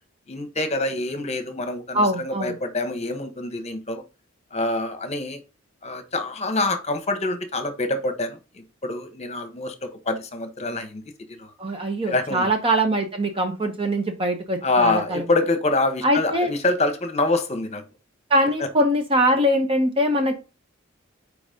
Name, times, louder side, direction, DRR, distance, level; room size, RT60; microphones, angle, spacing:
voice 1, 0.3-4.0 4.5-5.4 5.8-11.0 11.3-11.5 12.1-12.5 14.6-17.8, left 2 dB, 35° left, 1.1 m, -26 dB
voice 2, 1.9-2.5 11.6-15.2 16.0-16.5 18.3-20.3, equal, 30° right, 0.9 m, -22 dB
4.8 x 4.0 x 5.0 m
head